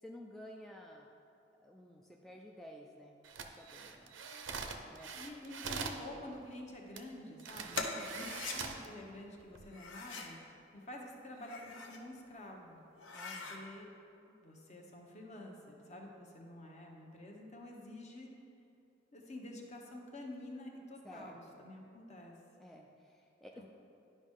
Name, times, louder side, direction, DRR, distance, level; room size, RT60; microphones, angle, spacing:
voice 1, 0.0-1.1 1.6-4.2 4.9-5.1 7.7-8.3 13.1-13.6 21.0-21.6 22.6-23.6, left 1 dB, ahead, -1 dB, 0.3 m, -53 dB
sound 1, 3.2-6.0 7.0-7.1 7.4-8.9 9.4-9.6, right 5 dB, 85° right, 0.6 m, -43 dB
voice 2, 5.1-7.8 8.2-10.4 10.7-12.8 13.5-13.9 14.3-18.3 19.1-22.3 23.5-23.6, left 1 dB, 40° left, 0 dB, 1.0 m, -49 dB
sound 2, 7.7-8.6 9.7-10.4 11.3-12.0 12.5-12.6 12.9-13.6, left 3 dB, 75° left, 0.8 m, -42 dB
11.0 x 5.3 x 3.7 m, 2.7 s
head